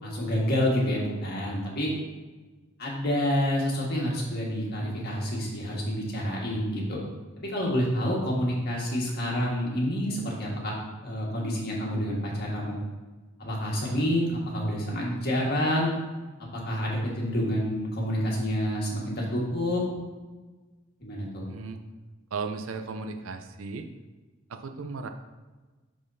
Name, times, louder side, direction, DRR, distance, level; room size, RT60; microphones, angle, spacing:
voice 1, 0.0-1.9 2.8-7.0 7.4-10.7 11.0-12.8 13.4-15.9 16.4-19.8 21.0-21.5, equal, 55° left, -3 dB, 1.6 m, -28 dB
voice 2, 21.5-21.8 22.3-23.9 24.5-25.1, right 4 dB, 85° right, 7 dB, 0.5 m, -35 dB
11.0 x 3.7 x 2.7 m, 1.2 s
head